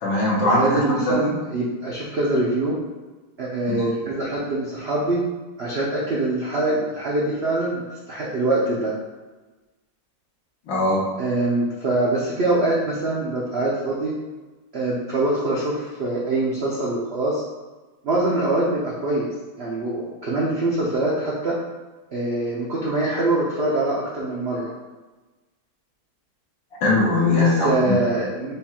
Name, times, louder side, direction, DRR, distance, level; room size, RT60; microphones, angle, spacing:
voice 1, 0.0-1.3 3.8-3.9 10.7-11.0 26.8-28.0, left 2 dB, 80° left, -4 dB, 1.9 m, -20 dB
voice 2, 0.5-2.8 3.4-5.2 5.6-8.9 11.2-14.2 14.7-17.4 18.0-19.3 19.6-21.6 22.1-24.7 27.4-28.5, right 2 dB, 70° right, -5 dB, 0.6 m, -24 dB
5.2 x 2.3 x 4.3 m, 1.2 s
omnidirectional pair, 2.0 m